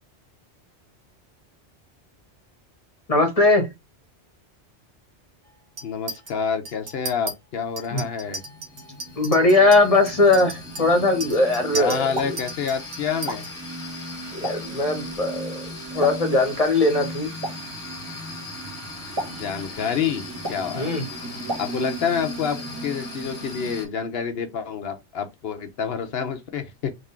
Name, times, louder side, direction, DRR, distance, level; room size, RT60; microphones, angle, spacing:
voice 1, 3.1-3.7 7.9-8.0 9.2-12.4 14.3-15.6 15.9-17.3 20.7-21.0, left 2 dB, 35° left, 1.3 m, -20 dB
voice 2, 5.8-8.4 11.7-13.5 19.2-20.2 20.5-20.9 21.6-22.6 22.8-26.9, left 7 dB, 65° left, 0.9 m, -28 dB
Chink clink, 5.8-6.3 6.7-7.3 7.8-13.5, right 2 dB, 80° right, 1.3 m, -36 dB
sound 1, 8.1-23.8, equal, 5° left, 2.0 m, -36 dB
Explosion, 11.9-22.2, right 1 dB, 25° right, 1.2 m, -38 dB
3.7 x 2.9 x 4.2 m
omnidirectional pair, 1.1 m